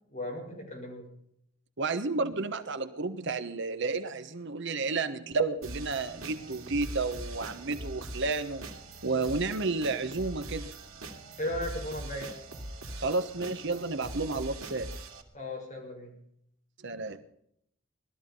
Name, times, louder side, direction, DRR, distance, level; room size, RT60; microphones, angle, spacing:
voice 1, 0.1-1.1 11.4-12.3 15.3-16.1, left 1 dB, 35° left, -1 dB, 6.8 m, -36 dB
voice 2, 1.8-8.7 9.0-10.7 13.0-14.9 16.8-17.2, right 3 dB, 60° right, 10 dB, 1.1 m, -31 dB
sound 1, 5.6-15.2, right 1 dB, 80° right, 2.6 m, -42 dB
19.5 x 13.5 x 5.5 m, 0.70 s
head